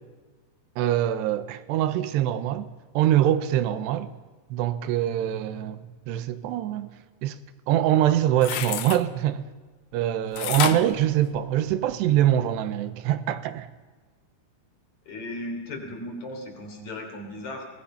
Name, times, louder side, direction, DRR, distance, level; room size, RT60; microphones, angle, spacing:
voice 1, 0.8-4.1 4.5-7.0 7.2-7.4 7.7-9.4 9.9-13.7, right 12 dB, 80° right, 3.0 m, -24 dB
sound 1, 8.1-9.0 10.4-11.9 12.4-12.5, left 12 dB, 90° left, 1.9 m, -30 dB
voice 2, 15.1-17.6, left 1 dB, 45° left, 4.7 m, -36 dB
24.5 x 19.0 x 5.7 m
omnidirectional pair, 5.0 m